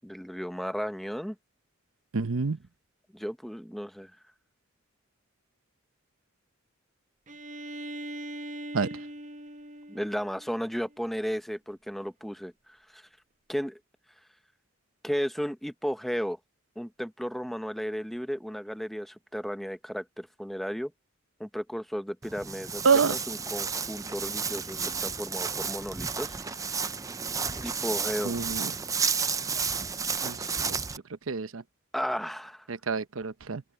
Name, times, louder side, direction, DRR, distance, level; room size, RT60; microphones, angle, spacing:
voice 1, 0.0-1.4 3.1-4.1 9.9-12.5 12.9-13.1 13.5-13.8 15.0-16.4 16.8-20.9 21.4-26.7 27.6-28.4 31.9-32.7, equal, ahead, 0.9 m, -34 dB
voice 2, 2.1-2.6 8.7-8.9 22.8-23.1 28.2-28.7 30.2-30.8 31.3-31.6 32.7-33.6, right 5 dB, 90° right, 0.9 m, -27 dB
Bowed string instrument, 7.3-11.0, right 1 dB, 40° right, 1.0 m, -41 dB
Walk footsteps, 22.2-31.0, right 5 dB, 15° right, 0.5 m, -32 dB
open air
head